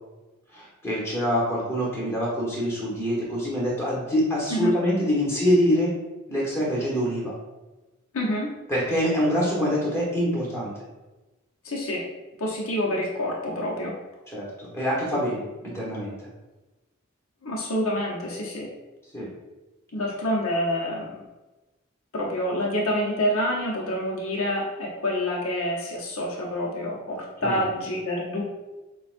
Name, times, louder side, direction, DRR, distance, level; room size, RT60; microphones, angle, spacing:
voice 1, 0.5-5.9 6.3-7.3 8.7-10.7 14.3-16.2 19.1-19.3 27.4-27.6, equal, 10° left, -6 dB, 1.2 m, -25 dB
voice 2, 8.1-8.5 11.6-12.0 12.4-13.9 17.4-18.7 19.9-21.1 22.1-28.4, equal, 80° left, -3 dB, 0.9 m, -27 dB
6.6 x 2.3 x 2.5 m, 1.1 s
head